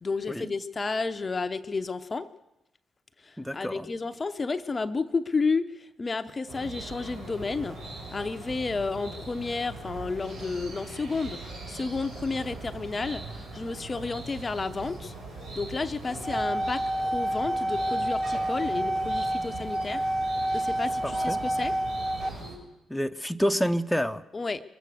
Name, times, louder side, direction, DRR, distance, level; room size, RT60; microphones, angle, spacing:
voice 1, 0.0-2.3 3.2-7.8 8.1-11.4 11.7-13.3 13.5-15.1 15.5-20.1 20.5-21.7 24.3-24.6, left 4 dB, 35° left, 9 dB, 0.7 m, -31 dB
voice 2, 3.4-3.9 21.0-21.4 22.9-24.2, equal, 5° left, 7 dB, 0.8 m, -28 dB
sound 1, 6.5-22.6, right 2 dB, 90° right, 4.9 m, -41 dB
sound 2, 16.1-22.3, right 1 dB, 15° right, 1.6 m, -29 dB
23.0 x 8.2 x 6.5 m, 0.96 s
hypercardioid pair, 45°, 0 cm